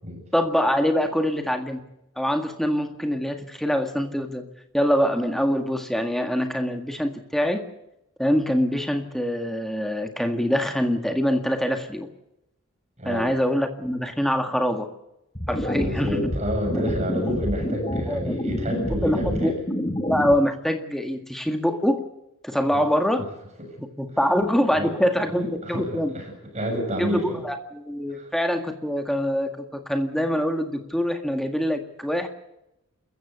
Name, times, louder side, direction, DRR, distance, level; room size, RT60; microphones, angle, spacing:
voice 1, 0.3-1.8 2.1-4.4 4.7-7.6 8.2-12.1 13.0-14.9 15.5-16.3 18.1-18.4 18.6-18.7 19.0-19.5 20.0-22.0 22.4-23.2 24.0-26.1 27.0-32.3, equal, ahead, 5 dB, 1.9 m, -24 dB
voice 2, 13.0-13.3 15.6-19.6 22.7-22.9 23.6-23.7 24.7-27.4 28.1-28.3, equal, 30° right, 2 dB, 7.0 m, -30 dB
sound 1, 15.3-20.3, left 1 dB, 20° left, 1.8 m, -28 dB
27.5 x 15.0 x 8.1 m, 0.87 s
head